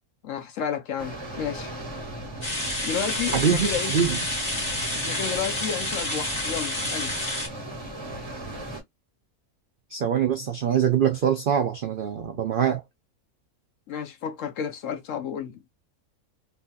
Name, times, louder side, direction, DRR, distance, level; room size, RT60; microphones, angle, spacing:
voice 1, 0.2-1.7 2.8-3.9 4.9-7.2 13.9-15.6, left 8 dB, 65° left, 0.9 m, -31 dB
sound 1, 1.0-8.8, right 1 dB, 20° right, 1.2 m, -37 dB
sound 2, 2.4-7.5, left 1 dB, 25° left, 1.4 m, -29 dB
voice 2, 3.3-3.7 3.9-4.2 9.9-12.8, right 8 dB, 80° right, 0.4 m, -23 dB
3.2 x 2.7 x 2.3 m
omnidirectional pair, 1.6 m